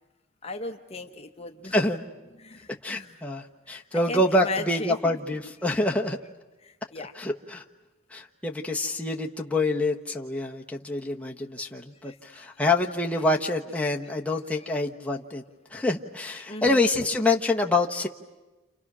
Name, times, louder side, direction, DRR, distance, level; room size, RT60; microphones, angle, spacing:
voice 1, 0.4-1.8 2.4-3.2 3.7-5.2 6.6-7.1 12.0-12.5 14.5-14.8 16.2-17.1, left 3 dB, 30° left, 5 dB, 1.0 m, -38 dB
voice 2, 1.7-2.0 2.8-6.2 7.2-7.6 8.1-15.4 15.7-18.1, left 2 dB, 5° left, -1 dB, 1.1 m, -26 dB
30.0 x 29.0 x 6.2 m, 1.1 s
head